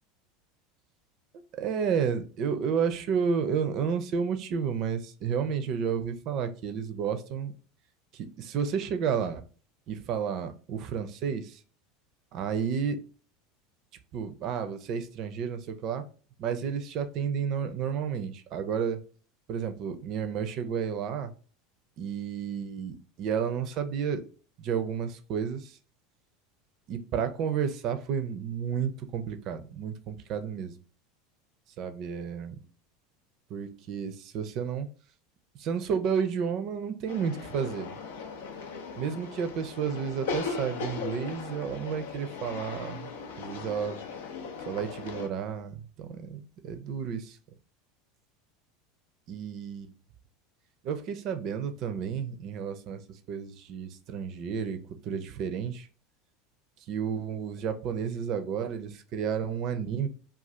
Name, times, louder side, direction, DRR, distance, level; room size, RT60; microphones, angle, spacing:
voice 1, 1.5-7.5 8.1-9.4 9.9-11.6 12.3-13.0 14.1-16.0 16.4-19.0 19.5-21.3 22.0-24.3 24.6-25.8 26.9-30.7 31.8-32.6 33.5-34.9 35.6-37.9 39.0-43.1 43.4-44.0 44.7-47.4 49.3-49.9 50.8-55.9 56.9-60.1, right 7 dB, 50° right, 0.5 m, -31 dB
sound 1, 37.1-45.3, left 5 dB, 75° left, 0.5 m, -38 dB
2.5 x 2.4 x 3.1 m
hypercardioid pair, 85°, 0 cm